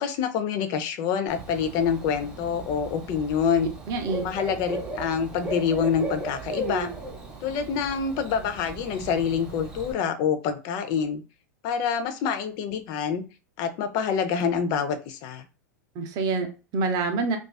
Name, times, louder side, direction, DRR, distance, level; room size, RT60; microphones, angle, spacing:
voice 1, 0.0-3.7 4.2-6.9 7.4-11.2 11.6-13.3 13.6-15.4, left 7 dB, 45° left, 8 dB, 0.5 m, -26 dB
Bird / Cricket, 1.3-9.9, right 3 dB, 10° right, 0.8 m, -37 dB
voice 2, 3.9-4.3 16.0-17.4, right 3 dB, 40° right, 5 dB, 0.6 m, -27 dB
2.4 x 2.3 x 2.2 m, 0.31 s
hypercardioid pair, 100°, 10 cm